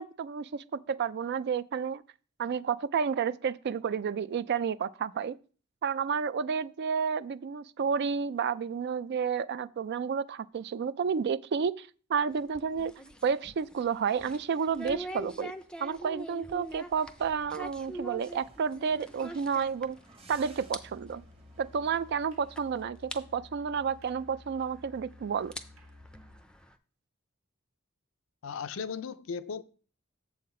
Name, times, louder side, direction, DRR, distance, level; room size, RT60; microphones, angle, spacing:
voice 1, 0.0-2.0 2.4-5.4 5.8-12.9 13.2-15.5 15.8-20.0 20.3-21.2 21.6-25.5, right 6 dB, 55° right, 0.3 m, -31 dB
sound 1, 12.3-20.3 20.5-20.8 21.1-21.2 22.0-22.1 22.6-22.7 23.1-23.2 24.6-24.7 25.3-26.7, right 1 dB, 5° left, 0.5 m, -43 dB
sound 2, 17.2-22.7, right 2 dB, 30° right, 1.0 m, -57 dB
Musical instrument, 20.2-26.5, left 2 dB, 85° right, 1.9 m, -54 dB
voice 2, 28.4-29.6, left 6 dB, 70° left, 0.5 m, -36 dB
7.4 x 5.7 x 4.3 m
head